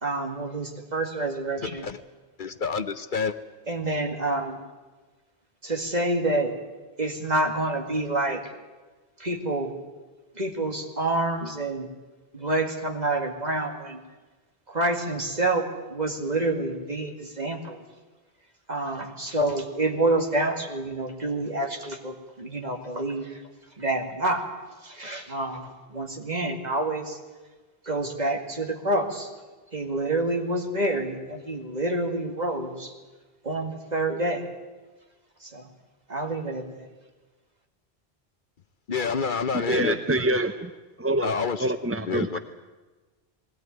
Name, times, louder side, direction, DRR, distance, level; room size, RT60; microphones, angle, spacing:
voice 1, 0.0-1.9 3.7-4.6 5.6-6.5 7.0-8.5 9.2-9.7 10.4-11.9 12.3-14.0 14.7-17.8 18.7-23.4 23.8-24.4 24.8-27.2 27.9-29.3 29.7-32.9 33.4-34.4 35.4-35.7 36.1-36.9, right 2 dB, 40° right, 3 dB, 2.4 m, -28 dB
voice 2, 1.6-2.0 2.4-3.4 38.9-40.0 41.2-41.7 42.1-42.4, left 5 dB, 55° left, 11 dB, 0.9 m, -28 dB
voice 3, 39.5-40.7 41.0-41.3 41.6-42.4, right 1 dB, 15° right, 8 dB, 0.6 m, -25 dB
20.5 x 17.5 x 9.4 m, 1.3 s
omnidirectional pair, 1.0 m